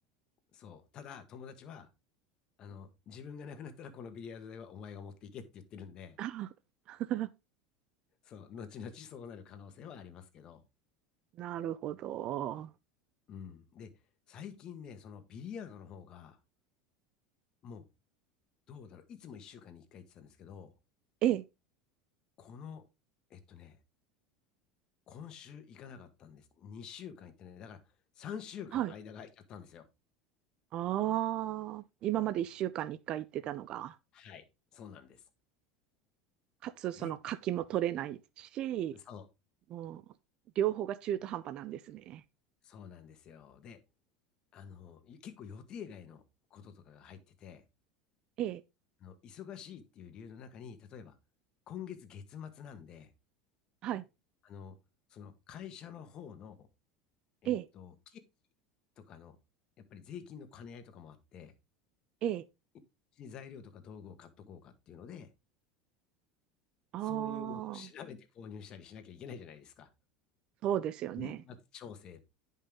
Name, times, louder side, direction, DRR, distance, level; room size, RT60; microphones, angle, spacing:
voice 1, 0.5-1.9 2.6-6.2 8.2-10.6 13.3-13.9 14.3-16.4 17.6-17.8 18.7-20.7 22.4-22.8 23.3-23.8 25.1-29.9 34.1-34.4 34.7-35.2 36.9-37.2 38.9-39.3 42.6-43.8 44.5-46.2 46.5-47.6 49.0-51.1 51.7-53.1 54.4-54.7 55.1-56.7 57.4-58.2 59.1-59.4 59.9-61.5 63.1-65.3 67.0-69.9 71.1-72.2, left 7 dB, 40° left, 1.6 m, -48 dB
voice 2, 6.2-6.5 6.9-7.3 11.4-12.7 21.2-21.4 28.7-28.9 30.7-34.0 36.6-39.0 39.7-40.0 40.6-42.2 48.4-48.6 53.8-54.0 57.4-57.7 62.2-62.4 66.9-67.9 70.6-71.4, right 12 dB, 45° right, 0.5 m, -34 dB
10.0 x 5.5 x 3.6 m
supercardioid pair, 135°, 2 cm